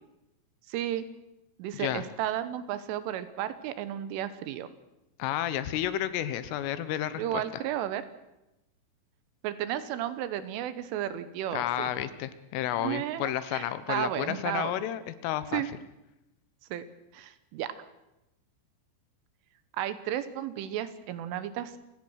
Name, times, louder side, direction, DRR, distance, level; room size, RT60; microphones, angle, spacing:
voice 1, 0.7-1.1 1.6-4.7 7.2-8.0 9.4-11.9 12.8-14.7 15.5-15.7 16.7-16.8 17.1-17.9 19.7-21.8, right 12 dB, 80° right, 13 dB, 3.4 m, -33 dB
voice 2, 1.7-2.0 5.2-7.6 11.5-15.6, left 12 dB, 80° left, 13 dB, 3.5 m, -31 dB
28.5 x 17.0 x 6.5 m, 0.94 s
omnidirectional pair, 5.9 m